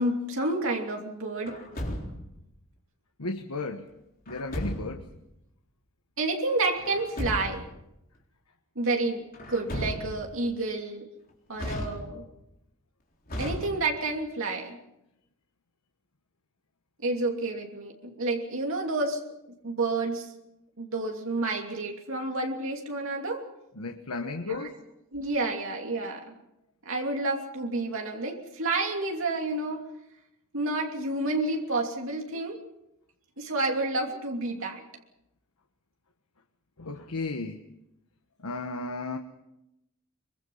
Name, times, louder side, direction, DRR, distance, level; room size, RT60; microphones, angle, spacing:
voice 1, 0.0-1.6 6.2-7.6 8.7-11.1 11.5-12.2 13.4-14.8 17.0-20.3 20.8-23.4 24.2-24.7 25.1-26.4 26.8-29.8 30.5-32.6 33.4-34.8, right 2 dB, 65° right, 1 dB, 3.0 m, -30 dB
Truck, 1.5-2.4 4.3-5.1 6.8-7.7 9.3-10.4 11.6-12.4 13.3-14.2, equal, 40° left, 4.0 m, -35 dB
voice 2, 3.2-3.9 4.3-5.0 23.8-24.7 36.8-37.6 38.4-39.2, left 3 dB, 85° left, 5 dB, 1.4 m, -34 dB
24.0 x 23.5 x 5.6 m, 0.87 s
head